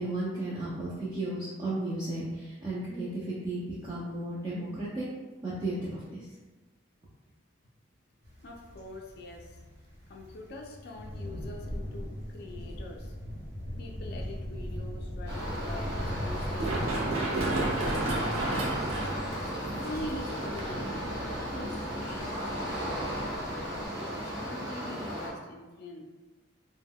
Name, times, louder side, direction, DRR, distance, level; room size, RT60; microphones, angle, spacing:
voice 1, 0.0-5.1 5.4-6.3, right 2 dB, 20° right, -9 dB, 0.4 m, -34 dB
sound 1, 8.2-17.0, equal, 45° right, 1.1 m, -39 dB
voice 2, 8.4-9.6 10.1-13.1 13.8-19.1 19.7-21.1 21.4-23.4 24.0-26.0, left 1 dB, 50° left, 1 dB, 0.3 m, -44 dB
sound 2, 15.3-25.3, equal, 60° right, 0.8 m, -36 dB
Run, 16.3-23.9, right 1 dB, 90° right, 0.6 m, -33 dB
2.2 x 2.1 x 3.5 m, 1.2 s
head